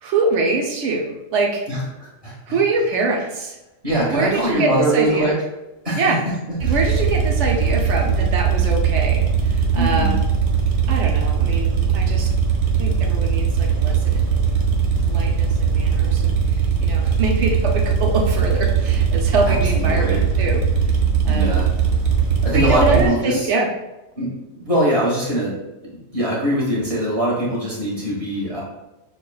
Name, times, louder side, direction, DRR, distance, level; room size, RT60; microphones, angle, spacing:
voice 1, 0.0-1.7 2.5-3.6 4.1-5.3 6.0-6.2 6.6-10.2 10.9-12.3 12.8-14.3 15.0-20.6 21.2-21.6 22.5-23.7, right 3 dB, 65° right, 1 dB, 0.8 m, -24 dB
voice 2, 1.7-2.4 3.8-5.4 5.8-6.3 6.6-6.8 9.8-10.2 19.4-20.2 21.3-21.7 22.4-23.5 24.2-28.6, right 1 dB, 25° right, -6 dB, 1.2 m, -22 dB
sound 1, 6.6-23.1, right 6 dB, 90° right, 1.2 m, -19 dB
6.4 x 2.3 x 2.3 m, 0.98 s
omnidirectional pair, 1.4 m